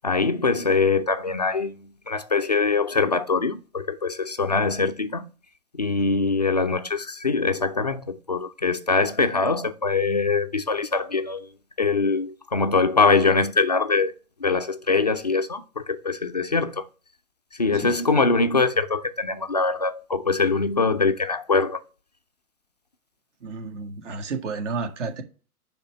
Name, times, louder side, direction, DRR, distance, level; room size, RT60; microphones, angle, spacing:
voice 1, 0.0-5.3 5.7-11.5 11.8-14.1 14.4-16.9 17.5-21.8, left 4 dB, 30° left, 0.4 m, -23 dB
voice 2, 23.4-25.2, right 4 dB, 50° right, 1.8 m, -31 dB
10.0 x 3.5 x 6.5 m
figure-of-eight pair, 130°, 46 cm